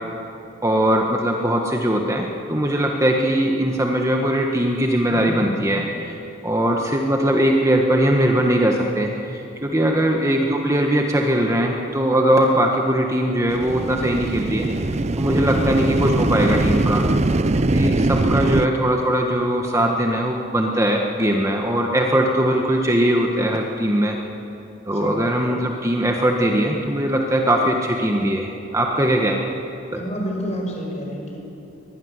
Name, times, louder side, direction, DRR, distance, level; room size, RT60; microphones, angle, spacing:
voice 1, 0.6-6.2 6.4-14.7 15.2-17.0 17.6-24.2 24.9-29.4 29.9-30.0, right 1 dB, 15° right, 1 dB, 1.5 m, -20 dB
voice 2, 5.1-5.5 9.8-10.2 15.3-15.6 24.9-25.4 29.9-31.4, equal, 35° left, 1 dB, 5.4 m, -30 dB
sound 1, 13.5-18.7, right 2 dB, 35° right, 0.6 m, -21 dB
24.0 x 19.0 x 9.8 m, 2.8 s
head